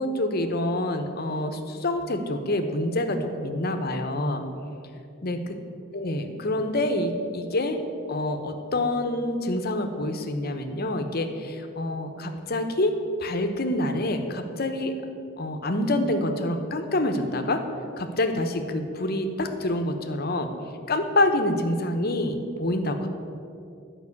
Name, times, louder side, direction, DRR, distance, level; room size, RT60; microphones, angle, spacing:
voice 1, 0.0-4.4 5.2-5.5 5.9-7.8 8.1-14.9 15.4-17.6 18.0-20.5 20.9-23.1, left 1 dB, 50° left, 6 dB, 0.9 m, -27 dB
11.0 x 5.6 x 8.4 m, 2.6 s
head